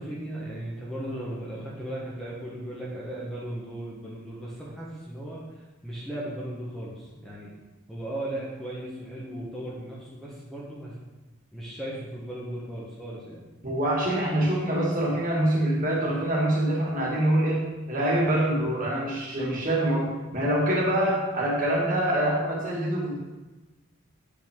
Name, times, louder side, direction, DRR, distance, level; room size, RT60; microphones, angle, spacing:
voice 1, 0.0-5.4 5.8-7.5 7.9-11.0 11.5-13.4, right 1 dB, ahead, -6 dB, 1.0 m, -36 dB
voice 2, 13.6-23.2, right 1 dB, 40° right, -4 dB, 1.8 m, -25 dB
7.8 x 5.4 x 3.6 m, 1.2 s
head